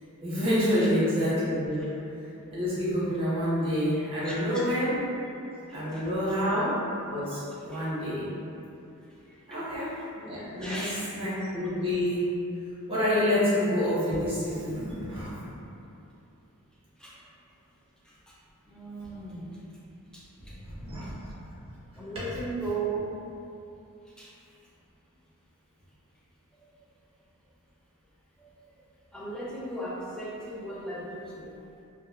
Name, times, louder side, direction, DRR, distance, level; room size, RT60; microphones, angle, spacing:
voice 1, 0.2-1.9 2.5-5.0 5.7-6.8 7.0-8.3 9.5-12.3 12.9-15.3 20.8-21.0, equal, 25° right, -12 dB, 0.9 m, -28 dB
voice 2, 4.2-4.6 5.9-6.0 7.7-7.8 9.3-9.6 10.6-11.0 17.0-17.1 18.3-18.4 18.7-19.6 20.1-20.5 22.0-23.2 24.2-24.3 28.4-28.5 29.1-31.5, right 2 dB, 5° left, -7 dB, 0.3 m, -36 dB
2.7 x 2.2 x 2.2 m, 2.7 s
head